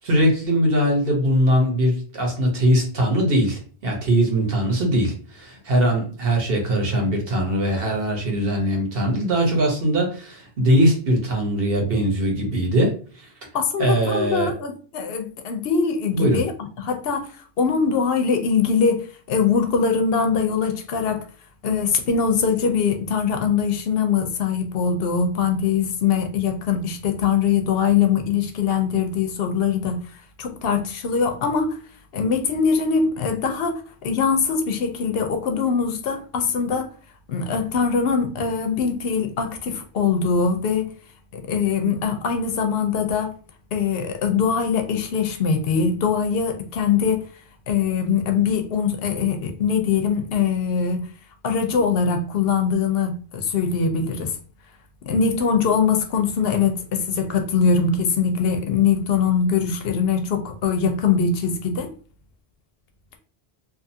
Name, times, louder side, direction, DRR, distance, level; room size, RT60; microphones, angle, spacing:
voice 1, 0.0-13.3 13.8-14.5 16.1-16.4, right 1 dB, 65° right, 1.1 m, -21 dB
voice 2, 13.5-21.2 21.6-30.0 30.4-31.8 32.1-36.9 37.3-40.9 41.3-43.3 43.7-47.2 47.7-51.0 51.4-54.3 55.1-61.9, left 6 dB, 70° left, 0.7 m, -22 dB
2.6 x 2.4 x 2.7 m
omnidirectional pair, 1.0 m